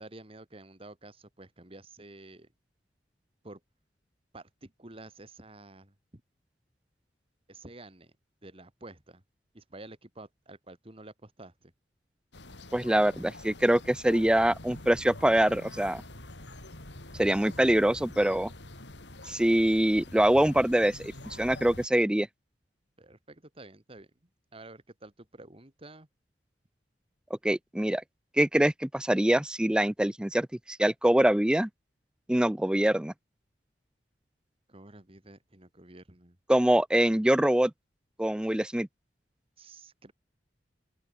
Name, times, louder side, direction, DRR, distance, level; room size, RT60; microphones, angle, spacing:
voice 1, 0.0-2.5 3.4-3.6 4.3-6.2 7.5-8.1 8.4-9.2 9.5-11.7 23.0-24.1 24.5-26.1 34.7-36.4 39.6-40.1, right 2 dB, 35° right, 2.4 m, -50 dB
sound 1, 12.3-21.9, left 1 dB, 80° left, 4.6 m, -46 dB
voice 2, 12.7-16.0 17.2-18.5 19.3-22.3 27.4-28.0 28.4-31.7 32.3-33.1 36.5-37.7 38.2-38.9, right 1 dB, 5° right, 0.4 m, -24 dB
open air
head